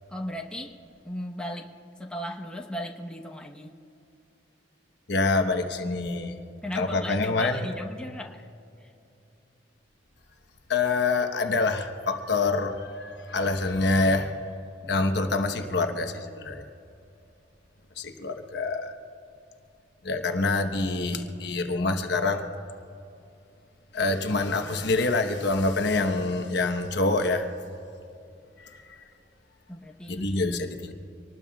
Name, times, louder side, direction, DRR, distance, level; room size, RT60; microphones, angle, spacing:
voice 1, 0.1-0.7 1.0-1.7 2.0-3.7 6.6-8.5 8.8-8.9 14.8-15.0 29.7-30.3, left 1 dB, 5° left, 0 dB, 1.1 m, -36 dB
voice 2, 5.1-6.4 6.7-7.7 10.7-14.3 14.9-16.6 18.0-19.0 20.0-22.5 23.9-27.5 28.6-29.0 30.1-30.9, left 3 dB, 65° left, 5 dB, 1.2 m, -26 dB
25.5 x 20.0 x 2.4 m, 2.7 s
head